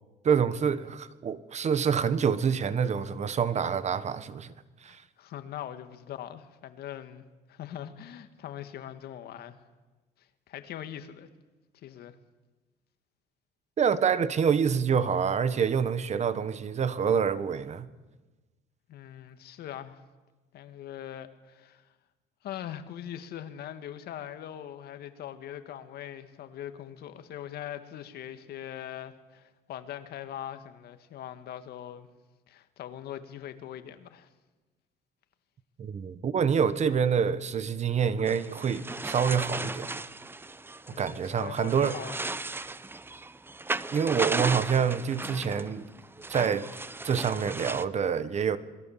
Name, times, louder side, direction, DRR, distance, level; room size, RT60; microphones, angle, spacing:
voice 1, 0.2-4.5 4.8-5.0 13.8-17.9 35.8-40.0 41.0-42.0 43.9-45.9 46.3-46.7 47.0-48.6, right 7 dB, 40° right, 1.4 m, -27 dB
voice 2, 4.8-9.6 10.5-11.3 11.8-12.1 18.9-20.0 20.5-21.9 22.4-32.1 32.5-34.3 40.9-42.2, left 11 dB, 70° left, 2.1 m, -41 dB
sound 1, 38.3-47.8, right 3 dB, 15° right, 0.8 m, -36 dB
27.0 x 21.5 x 7.5 m
cardioid pair, 110°, 17 cm